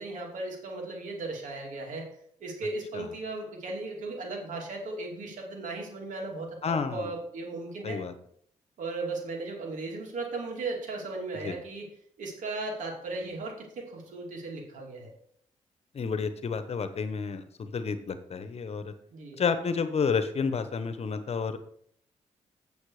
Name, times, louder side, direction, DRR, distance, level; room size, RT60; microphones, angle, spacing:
voice 1, 0.0-2.1 2.4-6.6 6.9-8.0 8.8-11.9 12.2-15.1 19.1-19.4, right 3 dB, 75° right, 0 dB, 2.9 m, -36 dB
voice 2, 6.6-7.1 7.8-8.1 11.4-11.6 15.9-18.9 19.3-21.6, left 5 dB, 55° left, 10 dB, 1.1 m, -30 dB
8.4 x 7.2 x 4.9 m, 0.64 s
cardioid pair, 70°, 13 cm